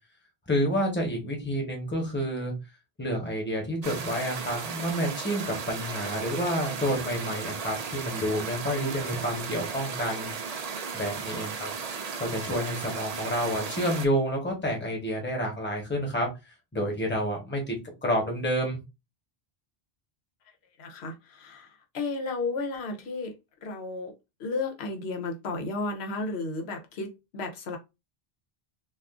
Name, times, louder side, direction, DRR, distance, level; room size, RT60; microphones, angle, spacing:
voice 1, 0.5-2.5 3.0-10.3 10.9-11.7 12.2-16.3 16.7-17.7 18.0-18.8, equal, 10° left, 0.9 m, -29 dB
sound 1, 3.8-14.1, right 5 dB, 50° right, 0.5 m, -35 dB
voice 2, 20.5-23.3 23.6-24.1 24.4-27.8, left 3 dB, 85° left, 1.0 m, -33 dB
2.4 x 2.4 x 3.5 m
omnidirectional pair, 1.1 m